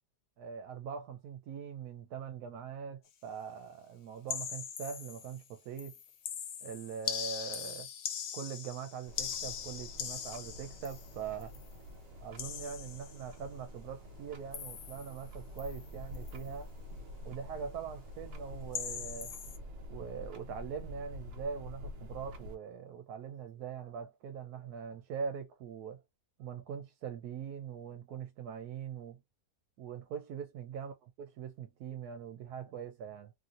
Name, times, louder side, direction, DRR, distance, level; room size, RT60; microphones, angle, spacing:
voice 1, 0.4-5.9 6.6-7.9 8.3-11.5 12.2-16.7 17.2-19.3 19.9-26.0 26.4-29.2 29.8-30.9 31.4-33.3, right 7 dB, 75° right, 1.1 m, -42 dB
sound 1, 4.3-5.5 5.8-11.7 12.4-13.3 14.5-15.2 15.6-15.9 16.1-16.4 18.7-19.6, left 8 dB, 65° left, 1.0 m, -41 dB
sound 2, 9.1-22.6, left 1 dB, 60° right, 0.7 m, -47 dB
3.1 x 2.7 x 2.5 m
omnidirectional pair, 1.7 m